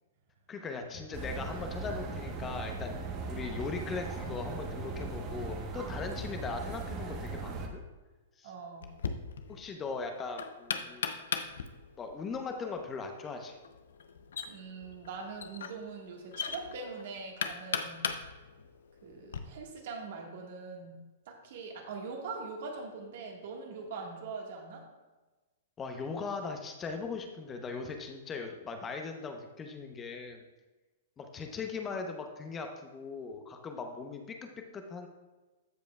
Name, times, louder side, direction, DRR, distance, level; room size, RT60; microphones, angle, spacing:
voice 1, 0.5-3.0 3.3-7.9 8.4-8.5 9.5-11.1 12.0-13.6 25.8-30.4 31.2-35.1, left 4 dB, 20° left, 4 dB, 0.8 m, -39 dB
sound 1, 1.1-7.7, right 3 dB, 35° right, 1.1 m, -38 dB
voice 2, 8.4-8.9 14.5-18.1 19.0-21.0 21.3-24.8, right 4 dB, 60° right, 1 dB, 1.6 m, -42 dB
Knock, 8.8-19.4, left 6 dB, 75° left, 0.6 m, -39 dB
14.0 x 5.1 x 2.3 m, 1.2 s
hypercardioid pair, 125°, 0 cm